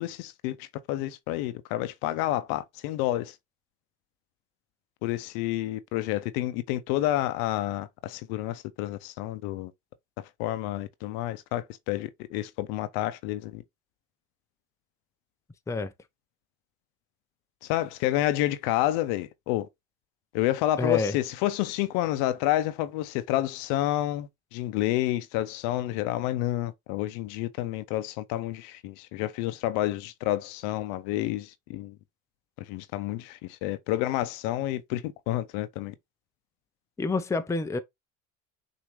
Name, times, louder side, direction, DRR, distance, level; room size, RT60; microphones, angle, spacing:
voice 1, 0.0-3.3 5.0-9.7 10.4-13.6 17.6-19.7 20.3-32.0 32.7-35.9, left 14 dB, 70° left, 0.7 m, -29 dB
voice 2, 20.8-21.1 37.0-37.8, left 3 dB, 10° left, 0.5 m, -27 dB
6.1 x 2.7 x 3.1 m
supercardioid pair, 85°, 38 cm